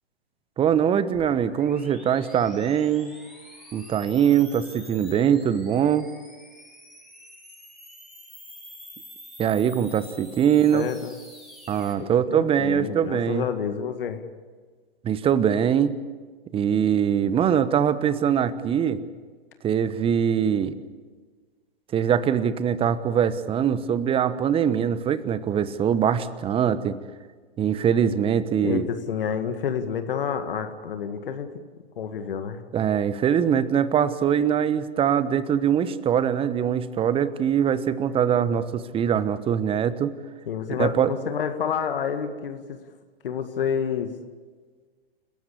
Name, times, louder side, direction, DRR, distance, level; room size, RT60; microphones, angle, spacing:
voice 1, 0.6-3.1 3.7-6.1 9.4-10.9 11.7-13.4 15.0-16.0 16.5-19.0 19.6-20.7 21.9-27.0 27.6-28.9 32.7-40.2 40.8-41.1, right 8 dB, 20° right, 15 dB, 1.1 m, -22 dB
sound 1, 1.1-11.9, equal, ahead, 5.3 m, -47 dB
voice 2, 10.7-11.1 12.0-14.2 28.6-31.5 32.0-32.6 40.5-42.8 43.2-44.1, left 7 dB, 65° left, 7 dB, 1.9 m, -29 dB
29.0 x 16.5 x 8.4 m, 1.5 s
figure-of-eight pair, 110°, 30 cm